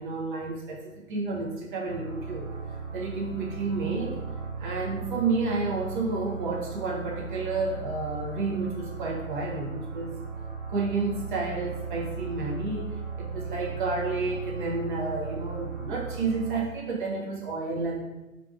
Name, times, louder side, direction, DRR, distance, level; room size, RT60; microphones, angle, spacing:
voice 1, 0.0-2.5 2.9-4.2 4.6-10.1 10.7-18.0, right 3 dB, 40° right, -1 dB, 0.5 m, -31 dB
sound 1, 1.8-16.5, right 5 dB, 70° right, 1.0 m, -37 dB
2.6 x 2.3 x 2.4 m, 1.1 s
hypercardioid pair, 135°, 42 cm